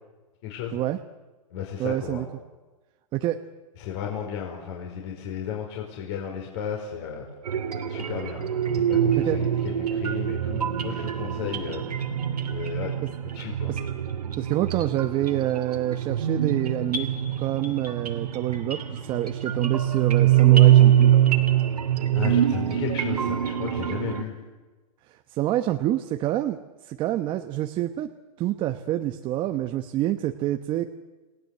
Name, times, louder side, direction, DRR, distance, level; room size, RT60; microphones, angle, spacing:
voice 1, 0.4-0.8 1.5-2.3 3.8-7.3 7.8-12.0 12.5-12.9 13.3-13.8 22.1-24.3, left 8 dB, 45° left, 0 dB, 5.0 m, -34 dB
voice 2, 1.8-2.2 3.1-3.4 9.2-9.4 13.7-13.8 14.4-17.1 17.4-21.1 25.1-28.1 28.4-30.9, right 13 dB, 25° right, 6 dB, 1.1 m, -27 dB
sound 1, 7.5-24.2, right 11 dB, 85° right, 2.9 m, -23 dB
29.0 x 19.0 x 7.9 m, 1.2 s
hypercardioid pair, 140°, 19 cm